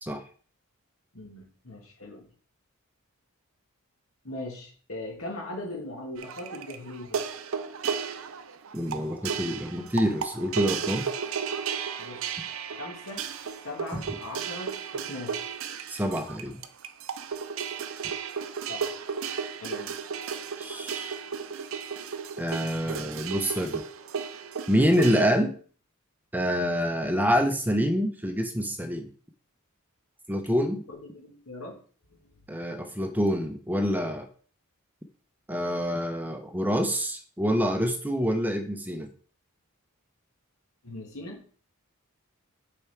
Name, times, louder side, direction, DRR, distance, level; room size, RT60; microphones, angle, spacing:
voice 1, 1.1-2.3 4.2-7.2 12.0-12.2 12.7-13.3 13.6-15.4 18.7-18.9 19.6-20.0 30.9-31.8 32.2-32.4 40.8-41.4, left 1 dB, 70° left, 1 dB, 2.3 m, -39 dB
sound 1, 6.2-25.3, right 6 dB, 65° right, 0.6 m, -34 dB
voice 2, 8.7-11.1 13.9-14.0 15.9-16.5 20.6-21.1 22.4-23.8 24.7-25.5 26.3-29.1 30.3-30.8 32.5-34.3 35.5-39.1, equal, 10° right, 6 dB, 0.6 m, -26 dB
6.6 x 4.8 x 4.4 m, 0.43 s
head